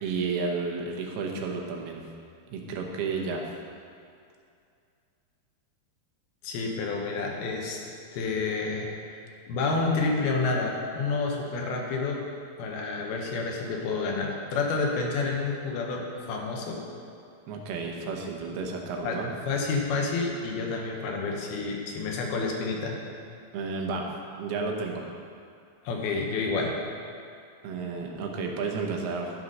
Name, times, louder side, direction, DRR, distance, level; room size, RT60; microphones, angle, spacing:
voice 1, 0.0-2.0 2.5-3.4 17.5-19.4 23.5-24.1 24.4-25.0 27.6-29.3, right 4 dB, 85° right, 1 dB, 3.0 m, -32 dB
voice 2, 6.4-7.8 8.1-9.2 9.5-12.2 12.6-16.9 19.0-19.2 19.5-23.0 25.8-26.8, left 3 dB, 80° left, 0 dB, 3.0 m, -29 dB
13.0 x 5.8 x 5.4 m, 2.4 s
omnidirectional pair, 4.4 m